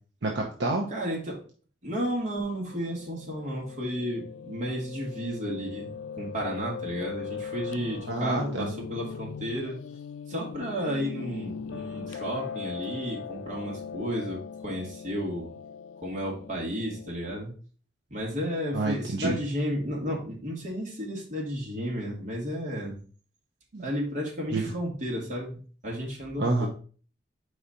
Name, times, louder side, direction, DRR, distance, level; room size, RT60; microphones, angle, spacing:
voice 1, 0.2-0.9 8.1-8.7 18.7-19.4 23.7-23.9 24.5-24.7 26.4-26.7, right 2 dB, 65° right, 0 dB, 0.9 m, -28 dB
voice 2, 0.9-1.5 1.8-9.8 10.3-15.5 16.0-17.5 18.1-23.0 23.8-26.7, equal, 40° right, -3 dB, 2.2 m, -33 dB
Piano, 2.7-17.2, left 6 dB, 85° left, 0.3 m, -40 dB
4.8 x 4.3 x 5.1 m, 0.40 s
head